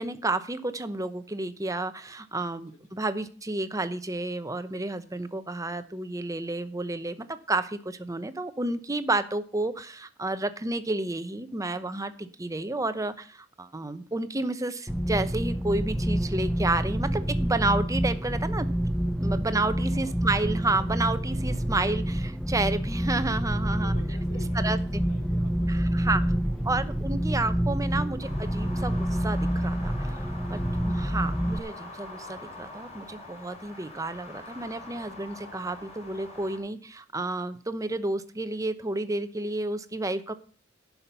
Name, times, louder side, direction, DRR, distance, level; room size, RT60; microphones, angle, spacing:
voice 1, 0.0-18.7 19.2-23.9 24.5-25.0 25.7-26.2 26.6-30.6 30.8-40.3, right 2 dB, 15° right, 11 dB, 0.8 m, -31 dB
sound 1, 14.9-31.6, equal, ahead, 0.4 m, -28 dB
voice 2, 23.6-27.0 30.6-30.9, left 1 dB, 80° left, 4 dB, 2.2 m, -50 dB
sound 2, 28.2-36.6, left 2 dB, 35° left, 3.5 m, -44 dB
11.0 x 5.8 x 6.9 m, 0.40 s
head